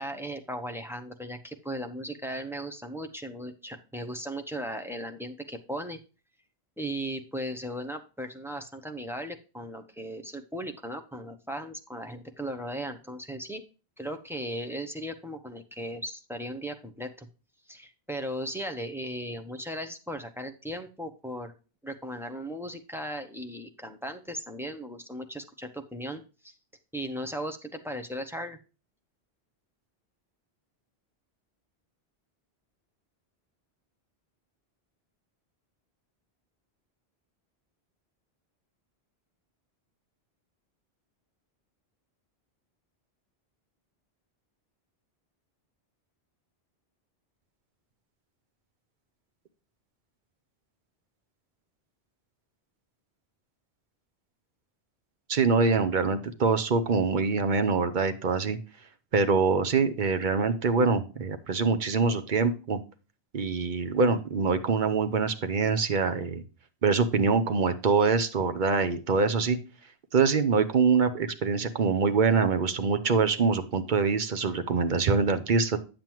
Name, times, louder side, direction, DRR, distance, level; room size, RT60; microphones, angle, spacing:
voice 1, 0.0-6.0 6.8-13.6 14.0-17.3 17.7-21.5 21.8-26.5 26.9-28.6, equal, 5° right, 5 dB, 0.6 m, -37 dB
voice 2, 55.3-58.6 59.1-62.8 63.3-66.4 66.8-69.6 70.1-75.8, right 4 dB, 50° right, 10 dB, 0.8 m, -24 dB
8.8 x 7.4 x 3.0 m, 0.33 s
omnidirectional pair, 1.1 m